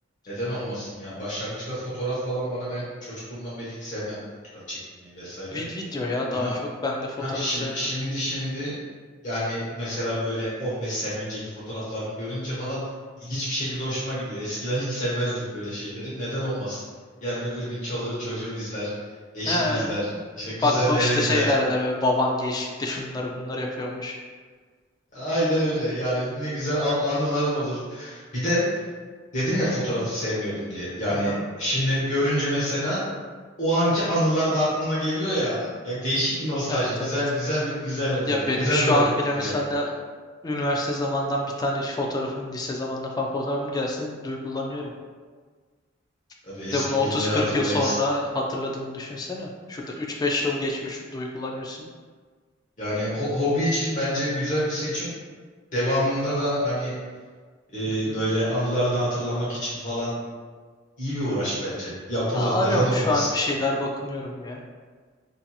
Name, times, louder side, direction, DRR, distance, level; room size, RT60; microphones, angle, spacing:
voice 1, 0.3-4.2 4.7-5.6 6.3-6.5 7.2-8.8 9.2-12.8 13.2-16.9 17.2-18.9 19.3-20.1 20.4-21.5 25.1-28.8 29.3-33.0 33.6-39.0 39.4-39.5 46.4-48.0 52.8-55.1 55.7-56.9 57.7-60.1 61.0-63.3, equal, 40° left, -10 dB, 0.8 m, -27 dB
voice 2, 5.5-6.5 6.8-7.8 19.5-20.2 20.5-24.2 31.1-31.4 36.7-37.2 38.3-39.9 40.4-44.9 46.7-51.8 57.9-58.2 62.3-64.6, left 2 dB, 20° left, 0 dB, 0.3 m, -27 dB
2.8 x 2.6 x 2.3 m, 1.5 s
head